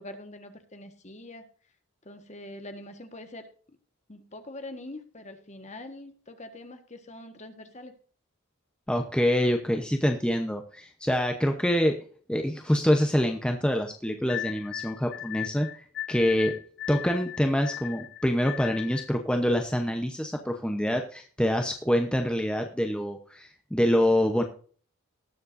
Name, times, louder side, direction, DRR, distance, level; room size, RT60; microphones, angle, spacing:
voice 1, 0.0-1.5 2.0-3.8 4.1-7.9, left 1 dB, 30° left, 7 dB, 1.5 m, -44 dB
voice 2, 8.9-11.9 12.3-16.5 16.9-24.4, equal, 5° left, 4 dB, 0.8 m, -26 dB
sound 1, 14.3-19.2, left 12 dB, 50° left, 0.5 m, -37 dB
19.5 x 7.4 x 2.6 m, 0.43 s
head